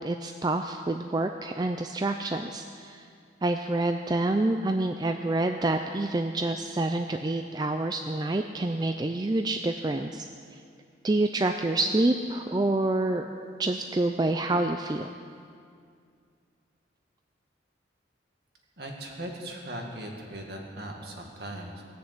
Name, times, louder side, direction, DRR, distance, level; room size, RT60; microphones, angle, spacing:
voice 1, 0.0-3.1 3.4-10.3 11.0-13.3 13.6-15.1, right 2 dB, 20° right, 6 dB, 0.4 m, -27 dB
voice 2, 18.8-21.8, right 1 dB, 55° right, 1 dB, 2.0 m, -39 dB
19.0 x 6.8 x 8.1 m, 2.3 s
head